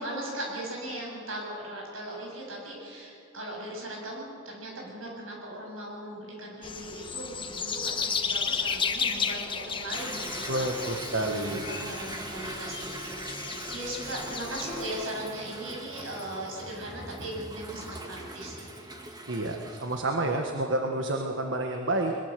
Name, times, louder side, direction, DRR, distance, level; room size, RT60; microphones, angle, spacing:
voice 1, 0.0-11.0 11.2-18.9, right 1 dB, 85° right, -1 dB, 7.9 m, -38 dB
sound 1, 6.6-15.0, left 5 dB, 25° left, 1.3 m, -33 dB
Toilet flush / Drip / Trickle dribble, 9.9-20.0, right 2 dB, 20° right, 2.1 m, -41 dB
voice 2, 10.5-11.7 19.3-22.1, right 2 dB, 65° right, 3 dB, 1.6 m, -29 dB
22.5 x 22.0 x 6.9 m, 2.5 s
head